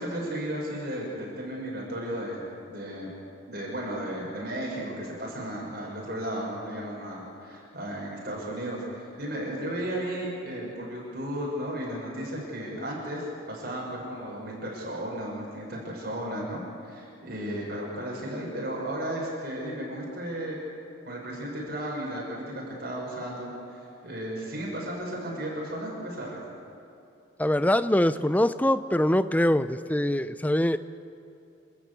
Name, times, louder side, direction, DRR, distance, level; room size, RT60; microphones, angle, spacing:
voice 1, 0.0-3.1 3.5-20.6 21.0-26.4, right 1 dB, 50° right, -4 dB, 6.2 m, -34 dB
voice 2, 27.4-30.8, left 1 dB, 10° left, 13 dB, 0.5 m, -23 dB
29.0 x 13.0 x 8.5 m, 2.8 s
head